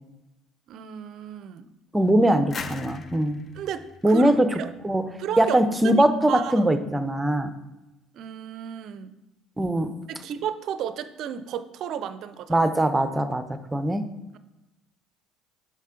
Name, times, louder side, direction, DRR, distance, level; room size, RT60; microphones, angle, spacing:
voice 1, 0.7-1.7 3.5-4.7 5.2-5.6 5.8-6.0 6.3-6.7 8.1-9.1 10.1-12.7, right 9 dB, 60° right, 12 dB, 0.4 m, -33 dB
voice 2, 1.9-3.4 4.0-4.6 4.8-5.0 5.4-7.5 9.6-9.9 12.5-14.0, right 1 dB, 15° right, 9 dB, 0.6 m, -21 dB
sound 1, 2.5-5.2, left 4 dB, 40° left, 0.5 m, -40 dB
5.4 x 5.2 x 3.8 m, 0.98 s
hypercardioid pair, 65°, 0 cm